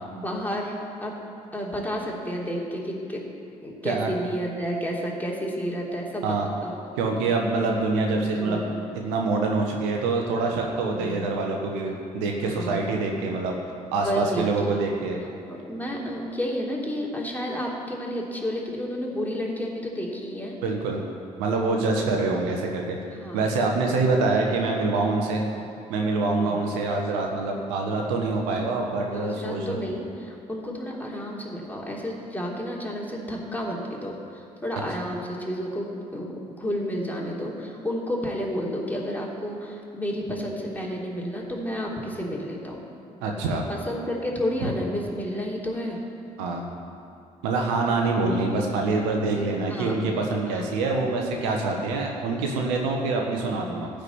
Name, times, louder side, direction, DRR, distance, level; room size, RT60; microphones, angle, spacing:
voice 1, 0.1-1.2 1.5-3.2 3.6-6.4 6.6-6.7 7.1-7.3 8.4-8.8 10.9-11.5 12.4-12.9 13.9-14.8 15.5-20.6 23.1-23.5 26.4-26.7 29.1-42.9 43.7-46.0 49.7-50.0 50.5-50.7 51.7-51.9, equal, 10° left, -3 dB, 3.3 m, -31 dB
voice 2, 7.0-8.6 8.9-13.6 13.9-15.2 20.6-21.0 21.4-23.0 23.3-25.4 25.9-29.8 43.2-43.6 46.4-46.6 47.4-53.9, right 3 dB, 75° right, 1 dB, 1.4 m, -25 dB
14.5 x 5.3 x 9.6 m, 2.6 s
hypercardioid pair, 45°, 19 cm